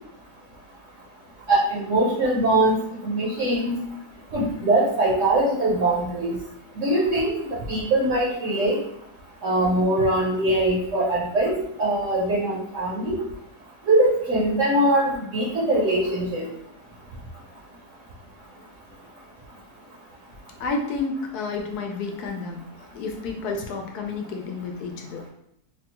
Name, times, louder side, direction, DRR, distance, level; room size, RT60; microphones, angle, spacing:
voice 1, 1.5-3.8 4.3-6.3 6.8-8.8 9.4-13.2 13.9-16.5, right 1 dB, 65° right, -3 dB, 0.8 m, -22 dB
voice 2, 20.6-25.2, left 4 dB, 80° left, 2 dB, 1.1 m, -30 dB
3.5 x 2.2 x 2.9 m, 0.79 s
omnidirectional pair, 1.7 m